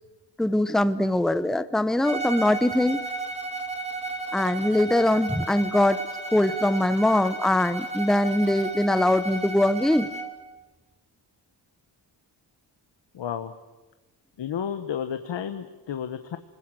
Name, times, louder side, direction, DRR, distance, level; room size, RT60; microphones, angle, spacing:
voice 1, 0.4-3.0 4.3-6.0 6.3-10.1, left 1 dB, ahead, 13 dB, 0.8 m, -22 dB
Bowed string instrument, 2.0-10.4, right 3 dB, 15° right, 2.8 m, -34 dB
voice 2, 13.1-13.5 14.4-16.4, left 8 dB, 75° left, 8 dB, 1.2 m, -32 dB
27.0 x 20.5 x 7.8 m, 1.2 s
cardioid pair, 95°, 44 cm